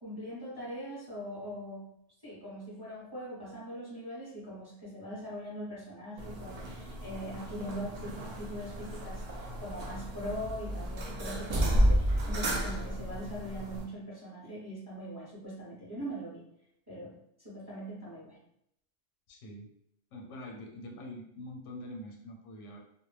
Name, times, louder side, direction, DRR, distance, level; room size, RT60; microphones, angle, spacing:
voice 1, 0.0-1.9 2.2-16.4 16.9-18.4, equal, 25° right, -8 dB, 0.7 m, -41 dB
sound 1, 6.2-13.8, equal, 80° right, 0.3 m, -32 dB
voice 2, 19.3-19.7 20.1-22.8, left 1 dB, 85° left, 1 dB, 0.9 m, -44 dB
2.2 x 2.1 x 3.2 m, 0.76 s
omnidirectional pair, 1.2 m